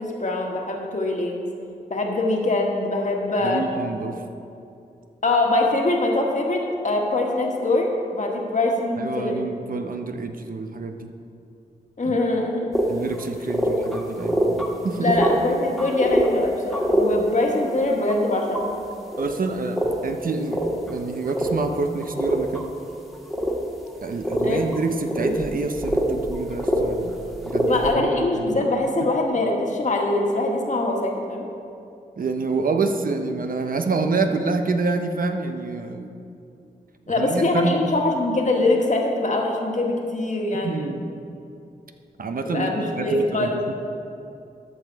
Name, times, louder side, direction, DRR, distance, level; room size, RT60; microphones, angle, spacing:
voice 1, 0.0-1.5 1.9-3.9 5.2-9.4 12.0-12.7 15.0-18.7 24.4-24.6 25.2-25.3 27.7-31.4 37.1-40.9 42.4-43.6, left 2 dB, 50° left, 1 dB, 1.5 m, -23 dB
voice 2, 3.4-4.2 9.0-11.1 12.0-12.2 12.9-15.3 19.2-22.7 24.0-27.2 27.4-28.6 28.9-29.1 32.2-36.1 37.2-37.9 40.6-41.2 42.2-43.7, right 3 dB, 60° right, 6 dB, 0.8 m, -27 dB
sound 1, 12.7-12.8 13.1-13.2 13.5-14.7 15.0-15.3 15.8-16.3 16.7-17.1 18.0-18.6 19.1-19.4 19.8-19.9 20.5-20.9 21.3-21.6 22.0-22.6 23.3-23.5 23.9-24.0 24.2-24.8 25.1-26.8 27.3-27.9, equal, ahead, 1.7 m, -23 dB
13.0 x 5.5 x 4.6 m, 2.6 s
cardioid pair, 50°, 16 cm